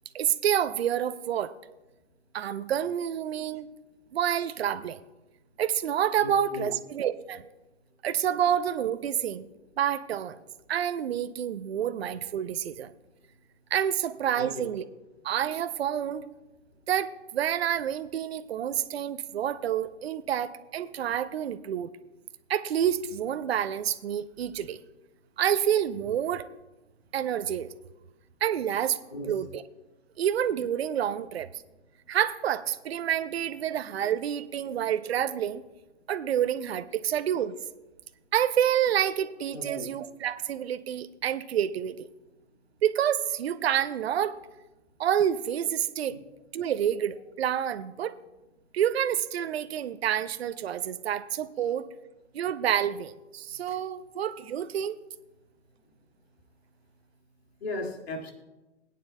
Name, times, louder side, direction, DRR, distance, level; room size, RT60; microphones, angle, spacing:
voice 1, 0.1-1.5 2.3-3.7 4.1-5.0 5.6-7.4 8.0-9.5 9.8-10.4 10.7-12.9 13.7-14.9 15.2-16.2 16.9-21.9 22.5-24.8 25.4-26.5 27.1-27.7 28.4-29.0 29.3-29.6 30.2-31.5 32.1-35.6 36.1-37.5 38.3-42.1 42.8-44.4 45.0-46.2 46.5-48.1 48.7-51.8 52.3-54.9, right 10 dB, 60° right, 12 dB, 0.6 m, -28 dB
voice 2, 6.2-6.7 14.4-14.7 29.1-29.3 39.5-39.9 57.6-58.3, left 2 dB, 60° left, 2 dB, 2.3 m, -36 dB
20.0 x 9.4 x 2.2 m, 1.0 s
hypercardioid pair, 135°, 36 cm